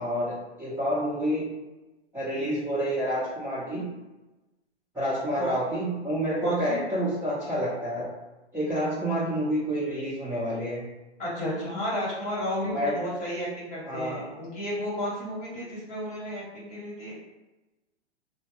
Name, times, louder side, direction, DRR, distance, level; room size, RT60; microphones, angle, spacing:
voice 1, 0.0-1.5 2.1-3.9 4.9-8.1 8.5-10.8 12.7-13.0 13.8-14.3, equal, 5° right, -13 dB, 0.9 m, -28 dB
voice 2, 6.4-6.8 11.2-17.1, equal, 20° left, -7 dB, 1.3 m, -32 dB
3.6 x 2.2 x 3.0 m, 1.1 s
hypercardioid pair, 120°, 34 cm